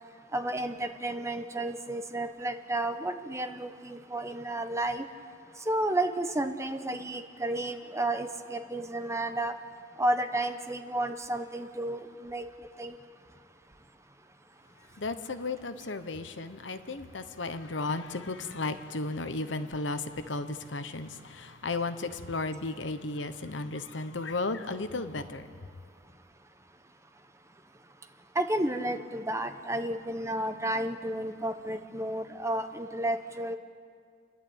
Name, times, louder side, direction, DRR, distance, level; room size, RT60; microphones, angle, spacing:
voice 1, 0.3-5.0 5.7-9.5 10.0-12.5 12.8-13.0 28.3-33.6, right 1 dB, 15° right, 8 dB, 1.0 m, -32 dB
voice 2, 15.0-25.5, left 3 dB, 80° left, 10 dB, 1.0 m, -34 dB
29.5 x 11.5 x 8.8 m, 2.1 s
head